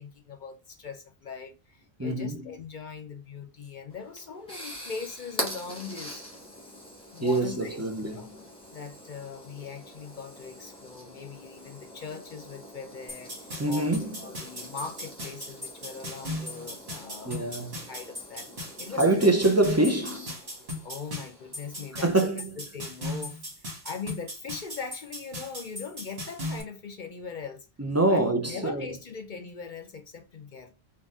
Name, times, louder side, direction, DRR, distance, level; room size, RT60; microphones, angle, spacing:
voice 1, 0.0-6.2 7.1-8.3 8.7-17.5 17.9-18.5 18.8-19.3 20.8-22.3 22.6-27.7 28.1-30.7, left 5 dB, 55° left, 0.7 m, -41 dB
voice 2, 2.0-2.5 7.2-8.5 13.6-14.2 17.2-17.8 19.0-20.4 22.0-22.5 27.8-28.9, right 2 dB, 20° right, 0.6 m, -25 dB
sound 1, 3.9-21.9, equal, 5° left, 1.3 m, -44 dB
sound 2, 13.1-26.6, left 1 dB, 70° right, 2.1 m, -38 dB
3.9 x 2.6 x 3.5 m
omnidirectional pair, 1.1 m